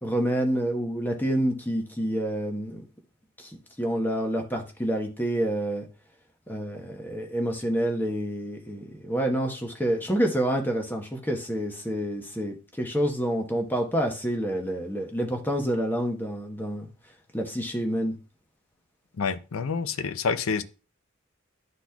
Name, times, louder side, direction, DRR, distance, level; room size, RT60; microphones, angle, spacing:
voice 1, 0.0-2.8 3.4-5.9 6.5-16.8 17.3-18.1, right 1 dB, 10° left, 0.9 m, -28 dB
voice 2, 19.2-20.6, left 5 dB, 80° left, 0.5 m, -28 dB
12.0 x 4.1 x 2.3 m
head